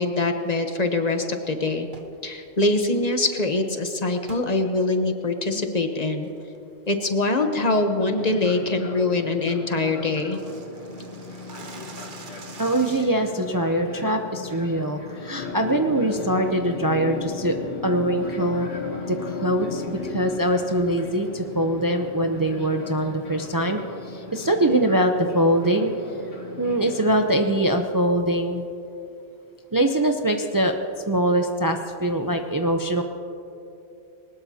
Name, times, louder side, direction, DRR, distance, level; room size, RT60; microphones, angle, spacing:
voice 1, 0.0-1.9 2.2-6.3 6.9-10.4, left 2 dB, 40° left, 5 dB, 1.0 m, -23 dB
sound 1, 1.9-2.2 4.3-4.5 5.0-5.1 5.6-5.8 6.2-6.6 6.9-7.2 7.5-7.6 8.0-8.3 8.6-8.7 9.0-9.1 9.3-9.4 9.7-13.3, right 4 dB, 55° right, 1.1 m, -45 dB
Fixed-wing aircraft airplane, 8.0-27.8, left 3 dB, 65° left, 2.4 m, -40 dB
voice 2, 12.6-17.5 17.8-18.7 19.1-25.9 26.6-28.7 29.7-30.7 31.1-33.0, right 1 dB, 25° right, 4 dB, 0.6 m, -23 dB
sound 2, 15.4-20.4, left 5 dB, 85° left, 1.2 m, -33 dB
21.5 x 19.0 x 2.8 m, 2.7 s
omnidirectional pair, 1.1 m